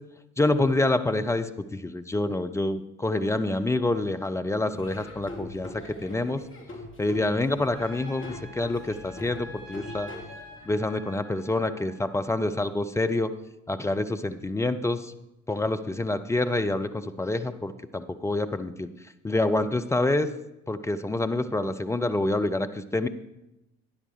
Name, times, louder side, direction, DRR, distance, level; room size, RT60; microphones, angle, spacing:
voice 1, 0.4-6.4 7.0-10.1 10.6-13.3 13.7-15.1 15.5-18.9 19.2-20.3 20.7-23.1, left 2 dB, 10° left, 9 dB, 0.3 m, -27 dB
Laughter / Drum, 4.7-10.7, left 2 dB, 30° left, 2.5 m, -42 dB
Trumpet, 7.7-12.1, left 1 dB, 75° right, 4.6 m, -47 dB
12.0 x 9.9 x 3.2 m, 0.90 s
figure-of-eight pair, 50°, 39 cm